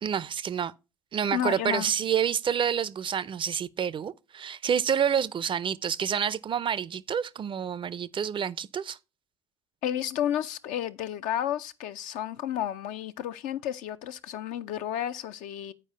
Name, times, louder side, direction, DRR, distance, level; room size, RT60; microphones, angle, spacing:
voice 1, 0.0-0.7 1.1-9.0, right 8 dB, 35° right, 0.5 m, -28 dB
voice 2, 1.3-1.9 9.8-15.7, left 10 dB, 60° left, 0.6 m, -31 dB
9.7 x 4.8 x 5.5 m
figure-of-eight pair, 55°, 15 cm